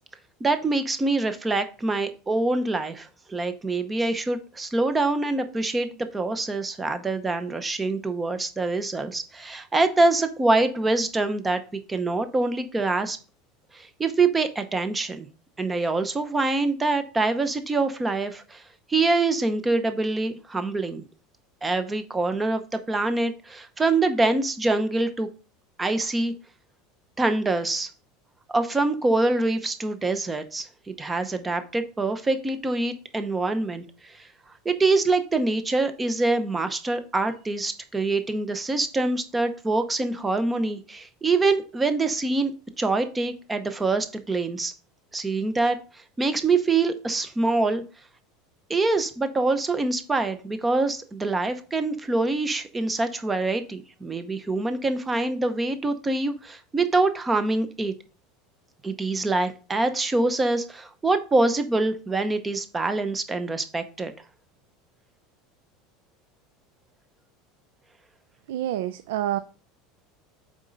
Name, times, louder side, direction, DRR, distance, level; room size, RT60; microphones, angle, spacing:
voice 1, 0.4-11.6 11.9-13.2 13.7-15.3 15.6-18.6 18.9-21.0 21.6-25.3 25.8-26.3 27.2-27.9 28.5-33.8 34.6-42.5 42.8-44.7 45.1-45.8 46.2-47.8 48.7-57.9 58.8-64.1, right 3 dB, 15° right, 9 dB, 0.8 m, -25 dB
voice 2, 68.5-69.4, right 12 dB, 85° right, 13 dB, 0.4 m, -27 dB
7.3 x 5.1 x 4.0 m, 0.37 s
supercardioid pair, 140°, 0 cm